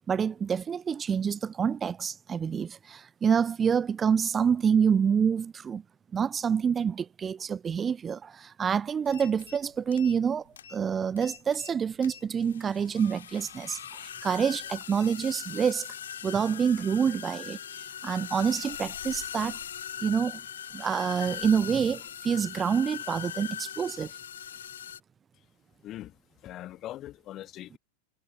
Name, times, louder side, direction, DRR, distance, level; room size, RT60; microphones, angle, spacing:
voice 1, 0.1-5.8 6.1-15.9 16.2-19.6 20.0-20.4 20.7-24.2, right 7 dB, 20° right, 0.4 m, -27 dB
sound 1, 9.1-9.6 9.9-10.3 10.6-10.8 11.2-11.7 12.0-25.0, left 9 dB, 65° left, 4.4 m, -40 dB
voice 2, 25.8-27.8, left 14 dB, 35° left, 1.8 m, -42 dB
figure-of-eight pair, 90°, 0 cm